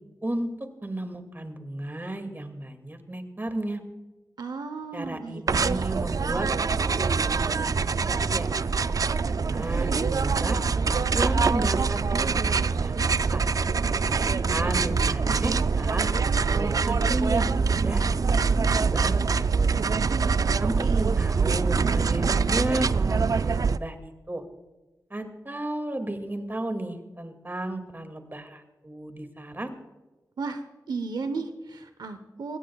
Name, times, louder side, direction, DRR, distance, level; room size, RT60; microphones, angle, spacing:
voice 1, 0.8-3.8 4.9-8.5 9.2-10.6 11.1-13.4 14.0-16.1 16.5-18.2 18.4-19.4 20.6-24.4 25.1-29.7, right 1 dB, 30° right, 7 dB, 2.2 m, -34 dB
voice 2, 4.4-5.9 20.1-21.0 30.4-32.6, right 4 dB, 85° right, 9 dB, 0.8 m, -35 dB
sound 1, 5.5-23.8, right 5 dB, 55° right, 0.4 m, -24 dB
20.5 x 17.0 x 2.3 m, 1.2 s
cardioid pair, 45°, 7 cm